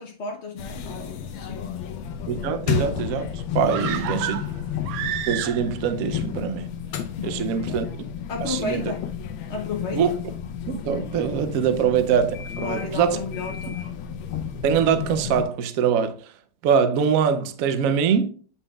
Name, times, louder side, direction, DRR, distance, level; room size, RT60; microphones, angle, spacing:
voice 1, 0.0-2.0 3.6-4.5 7.2-7.9 8.3-9.2 9.5-10.2 11.7-11.9 12.6-14.0, left 4 dB, 55° left, 0.7 m, -34 dB
sound 1, 0.6-15.4, left 8 dB, 85° left, 1.4 m, -32 dB
voice 2, 2.3-4.4 5.3-6.7 7.2-8.1 8.4-8.8 9.9-10.1 10.7-13.2 14.6-16.2 16.6-18.3, right 7 dB, 70° right, 0.8 m, -23 dB
sound 2, 3.7-5.9 6.2-6.3, right 9 dB, 85° right, 1.4 m, -30 dB
8.1 x 5.6 x 2.3 m
omnidirectional pair, 2.1 m